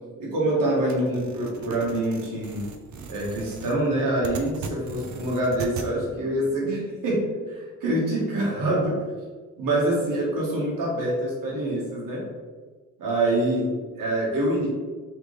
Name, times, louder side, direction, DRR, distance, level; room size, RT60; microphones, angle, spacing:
voice 1, 0.2-2.6 3.1-9.0 9.6-12.2 13.0-13.7 14.0-14.7, right 1 dB, 85° right, -3 dB, 1.4 m, -25 dB
sound 1, 0.9-5.9, right 5 dB, 60° right, 0.5 m, -38 dB
3.3 x 3.3 x 3.8 m, 1.4 s
cardioid pair, 120°, 32 cm